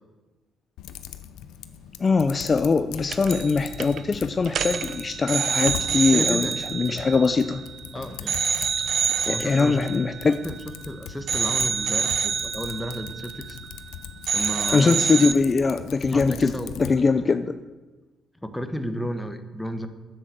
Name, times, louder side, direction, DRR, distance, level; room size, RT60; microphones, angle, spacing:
Typing, 0.8-17.0, left 9 dB, 90° left, 0.6 m, -40 dB
voice 1, 2.0-7.6 9.3-10.4 14.7-17.5, left 4 dB, 35° left, 10 dB, 0.5 m, -22 dB
sound 1, 3.1-3.5 3.8-4.0 4.5-7.8 8.3-10.9 11.3-13.9 14.3-15.3, right 7 dB, 65° right, 0.7 m, -27 dB
voice 2, 6.1-7.1 7.9-8.4 9.2-9.9 10.3-13.6 14.3-15.0 16.1-16.7 18.4-19.9, equal, 5° left, 8 dB, 1.2 m, -33 dB
9.6 x 7.8 x 7.9 m, 1.2 s
cardioid pair, 90°, 0 cm